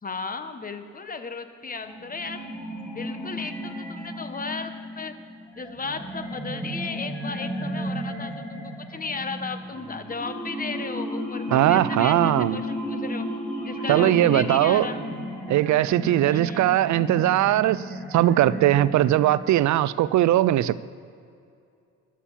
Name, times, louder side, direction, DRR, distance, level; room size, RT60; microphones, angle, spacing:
voice 1, 0.0-2.4 2.9-5.1 5.6-13.3 13.6-15.0 16.3-16.6, left 4 dB, 30° left, 8 dB, 1.3 m, -35 dB
sound 1, 1.8-19.8, equal, 5° left, 2.8 m, -34 dB
voice 2, 11.5-12.6 13.9-14.9 15.5-20.8, right 13 dB, 70° right, 18 dB, 0.5 m, -20 dB
13.0 x 8.5 x 7.4 m, 2.4 s
cardioid pair, 90°, 30 cm